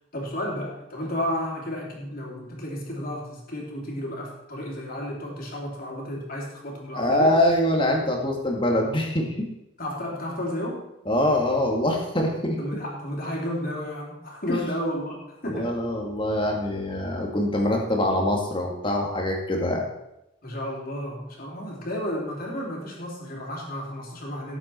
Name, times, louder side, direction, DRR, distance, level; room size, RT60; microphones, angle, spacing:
voice 1, 0.1-7.3 9.8-10.9 12.6-15.8 20.4-24.6, equal, 45° left, -2 dB, 3.4 m, -32 dB
voice 2, 7.0-9.5 11.1-12.8 14.5-14.6 15.4-19.8, left 1 dB, 25° left, 1 dB, 2.1 m, -24 dB
17.0 x 8.1 x 4.5 m, 0.89 s
head